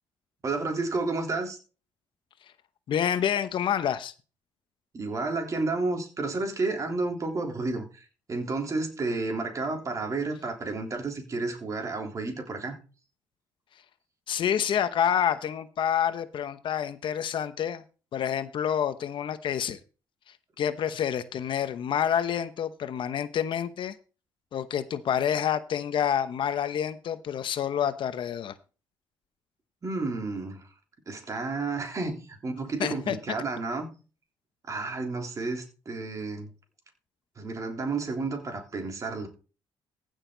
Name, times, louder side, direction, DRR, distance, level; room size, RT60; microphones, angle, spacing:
voice 1, 0.4-1.6 4.9-12.8 29.8-30.7 31.1-33.9 34.7-36.5 37.4-39.3, right 3 dB, 35° right, 3.5 m, -31 dB
voice 2, 2.9-4.1 14.3-17.8 18.1-19.8 20.6-23.9 24.5-28.5 32.8-33.2, left 9 dB, 60° left, 1.0 m, -28 dB
15.5 x 6.6 x 4.0 m
cardioid pair, 110°, 9 cm